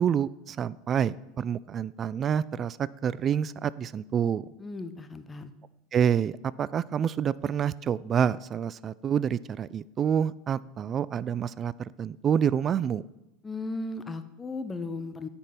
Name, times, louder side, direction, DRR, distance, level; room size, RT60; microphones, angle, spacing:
voice 1, 0.0-4.5 5.9-13.0, right 8 dB, 35° right, 20 dB, 0.3 m, -28 dB
voice 2, 4.6-5.5 13.4-15.3, left 3 dB, 20° left, 11 dB, 0.7 m, -36 dB
9.0 x 5.3 x 5.8 m, 0.92 s
hypercardioid pair, 90°, 0 cm